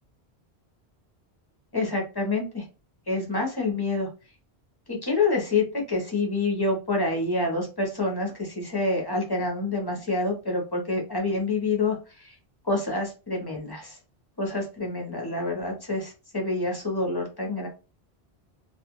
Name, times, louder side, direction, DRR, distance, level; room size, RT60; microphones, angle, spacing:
voice 1, 1.7-2.6 3.1-4.1 4.9-12.0 12.2-12.3 12.7-14.0 14.4-17.7, left 3 dB, 25° left, 0 dB, 0.6 m, -27 dB
2.5 x 2.3 x 2.9 m, 0.31 s
omnidirectional pair, 1.1 m